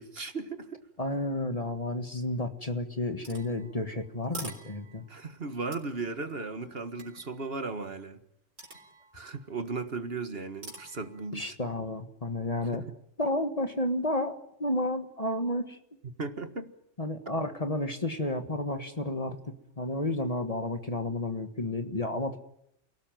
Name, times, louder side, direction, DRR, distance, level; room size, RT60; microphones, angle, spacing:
voice 1, 0.0-0.8 5.1-8.2 9.1-11.7 12.6-12.9 16.2-16.7, right 3 dB, 50° right, 9 dB, 1.8 m, -36 dB
voice 2, 1.0-5.0 11.3-12.8 13.2-15.8 17.0-22.4, left 1 dB, 30° left, 7 dB, 1.7 m, -31 dB
sound 1, 3.2-5.2 5.7-7.5 8.6-9.5 10.6-11.3, right 2 dB, 90° right, 4.4 m, -46 dB
28.5 x 18.0 x 9.1 m, 0.78 s
omnidirectional pair, 1.3 m